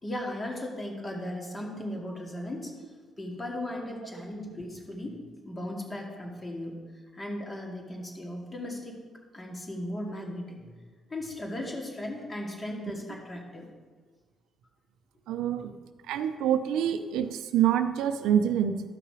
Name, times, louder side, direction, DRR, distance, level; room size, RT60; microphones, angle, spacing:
voice 1, 0.0-2.7 3.2-5.2 5.4-6.7 7.1-8.9 9.3-10.7 11.1-13.7, left 1 dB, 25° left, -1 dB, 2.3 m, -37 dB
voice 2, 15.3-15.7 16.1-18.8, right 9 dB, 90° right, 9 dB, 0.6 m, -26 dB
12.5 x 5.7 x 4.9 m, 1.5 s
cardioid pair, 90°, 0 cm